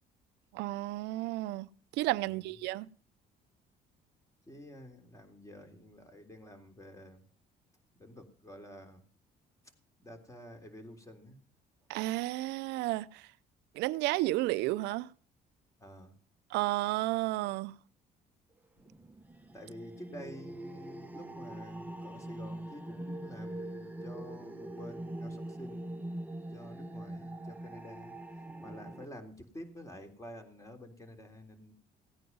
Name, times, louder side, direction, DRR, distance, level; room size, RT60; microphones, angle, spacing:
voice 1, 0.5-1.7 2.0-2.9 11.9-13.2 13.8-15.1 16.5-17.7, right 18 dB, 90° right, 0.6 m, -32 dB
voice 2, 2.2-2.5 4.5-7.2 8.0-9.1 10.0-11.4 15.8-16.2 18.8-18.9 19.5-26.0 26.5-28.2 28.6-31.7, equal, 20° left, 3.5 m, -49 dB
sound 1, 18.9-29.0, right 1 dB, 10° right, 1.1 m, -43 dB
17.0 x 9.4 x 5.4 m
cardioid pair, 110°, 17 cm